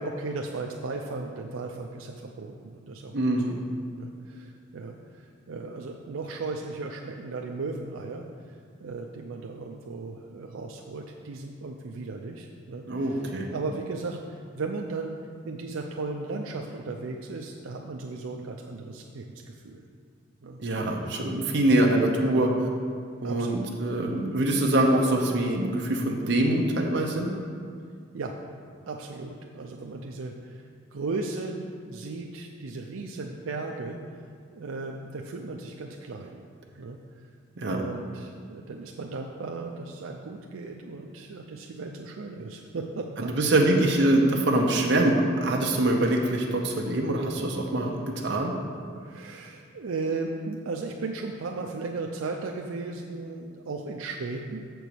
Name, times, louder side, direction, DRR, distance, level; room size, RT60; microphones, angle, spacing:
voice 1, 0.0-3.5 3.9-15.1 15.5-19.9 20.4-20.6 23.2-23.7 28.1-28.3 28.9-30.6 30.9-31.6 31.9-34.0 34.5-36.4 36.8-37.0 37.6-43.7 49.0-54.6, right 3 dB, 90° right, 1 dB, 0.5 m, -36 dB
voice 2, 3.1-3.6 12.9-13.5 20.6-22.7 23.2-27.3 37.6-37.8 43.2-48.5, right 1 dB, 60° right, 0 dB, 0.8 m, -24 dB
7.1 x 4.6 x 6.7 m, 2.2 s
head